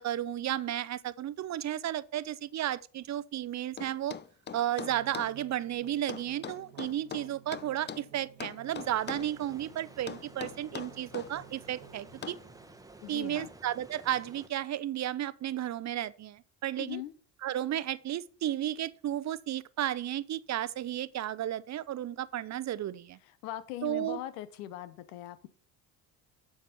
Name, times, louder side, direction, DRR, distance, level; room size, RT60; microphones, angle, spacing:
voice 1, 0.0-4.2 4.5-12.4 13.1-17.0 17.4-23.2 23.8-24.2, right 12 dB, 40° right, 0.6 m, -33 dB
sound 1, 3.8-5.3 6.1-8.1 8.4-9.3 10.1-11.3 12.2-12.5, left 7 dB, 25° left, 0.6 m, -41 dB
sound 2, 4.9-13.9, right 9 dB, 85° right, 1.1 m, -56 dB
sound 3, 8.7-14.5, right 2 dB, 10° right, 1.0 m, -53 dB
voice 2, 13.0-13.5 16.8-17.1 23.4-25.5, left 14 dB, 85° left, 0.9 m, -40 dB
7.4 x 5.9 x 5.4 m
hypercardioid pair, 70°, 45 cm